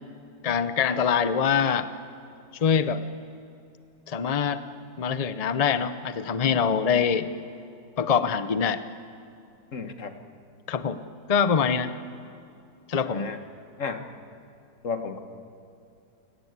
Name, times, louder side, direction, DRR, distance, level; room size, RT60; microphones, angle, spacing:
voice 1, 0.4-1.9 2.6-3.0 4.1-4.6 5.0-7.3 8.0-8.8 10.7-11.0 11.3-11.9 12.9-13.3, left 7 dB, 70° left, 12 dB, 0.3 m, -24 dB
voice 2, 9.7-10.1 13.0-13.4 13.8-14.0 14.8-15.2, left 5 dB, 45° left, 7 dB, 1.7 m, -33 dB
29.5 x 18.0 x 8.2 m, 2.5 s
omnidirectional pair, 2.0 m